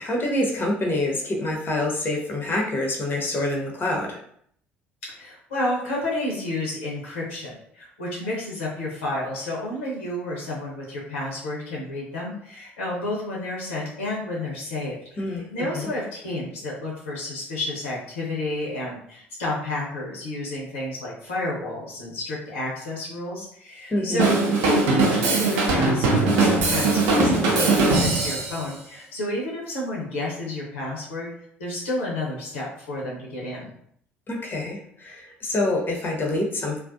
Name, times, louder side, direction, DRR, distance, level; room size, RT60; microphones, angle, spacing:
voice 1, 0.0-4.2 15.2-15.9 23.9-24.3 34.3-36.8, left 1 dB, 30° left, -1 dB, 0.7 m, -26 dB
voice 2, 5.0-15.0 15.2-31.3 31.6-33.7, left 2 dB, 75° left, -4 dB, 0.7 m, -30 dB
Drum kit / Drum, 24.2-28.6, right 3 dB, 65° right, 0.6 m, -20 dB
2.4 x 2.1 x 2.5 m, 0.66 s
figure-of-eight pair, 55°, 7 cm